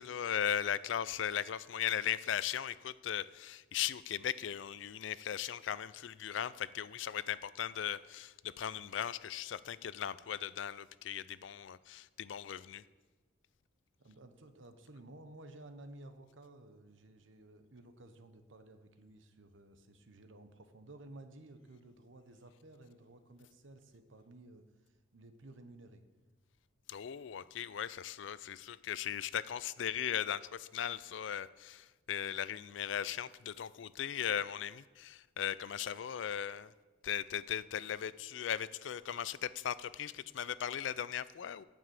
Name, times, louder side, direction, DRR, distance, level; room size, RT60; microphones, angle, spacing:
voice 1, 0.0-12.8 26.9-36.7 37.0-41.6, left 9 dB, 65° left, 18 dB, 0.4 m, -38 dB
voice 2, 14.0-26.0, right 2 dB, 75° right, 8 dB, 1.1 m, -55 dB
9.3 x 7.1 x 8.2 m, 1.2 s
head